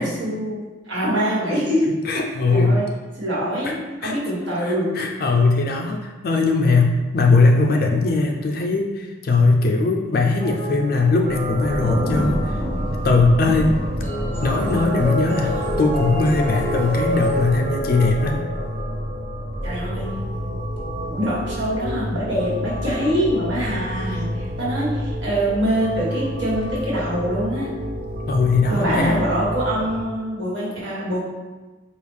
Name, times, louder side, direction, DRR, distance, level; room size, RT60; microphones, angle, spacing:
voice 1, 0.0-1.9 2.5-2.9 3.2-5.0 19.6-20.2 21.1-27.7 28.7-31.2, equal, 80° right, -7 dB, 1.5 m, -24 dB
voice 2, 2.1-2.8 3.6-3.7 4.0-4.1 4.6-12.6 13.0-13.7 14.4-18.4 28.3-29.3, left 3 dB, 50° left, 2 dB, 0.3 m, -19 dB
sound 1, 10.4-11.7 14.0-19.3, equal, 10° left, 0.7 m, -29 dB
sound 2, 11.2-30.0, equal, 50° right, 0.6 m, -29 dB
Thunder, 11.6-16.9, equal, 15° right, 1.2 m, -30 dB
4.8 x 2.3 x 3.4 m, 1.2 s
head